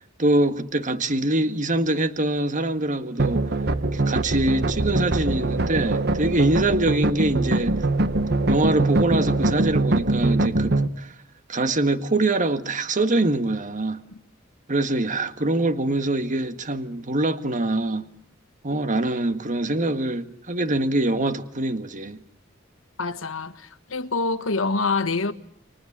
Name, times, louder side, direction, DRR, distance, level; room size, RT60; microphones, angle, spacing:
voice 1, 0.0-3.4 3.9-7.8 8.5-11.1 11.5-14.0 14.7-18.1 18.6-22.2, right 2 dB, 40° right, 1.6 m, -24 dB
sound 1, 3.2-10.9, right 2 dB, 55° right, 1.3 m, -23 dB
voice 2, 23.0-25.3, left 3 dB, 90° left, 1.5 m, -26 dB
30.0 x 23.5 x 7.4 m
head